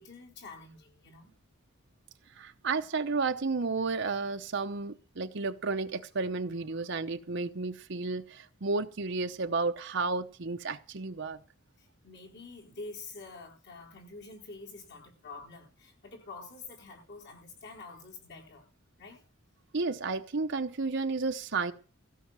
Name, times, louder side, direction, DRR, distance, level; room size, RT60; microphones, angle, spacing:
voice 1, 0.0-1.3 11.8-18.7 19.0-19.2, left 3 dB, 55° left, 4.3 m, -47 dB
voice 2, 2.3-11.4 19.7-21.7, right 4 dB, 60° right, 0.8 m, -32 dB
16.0 x 5.8 x 8.8 m
head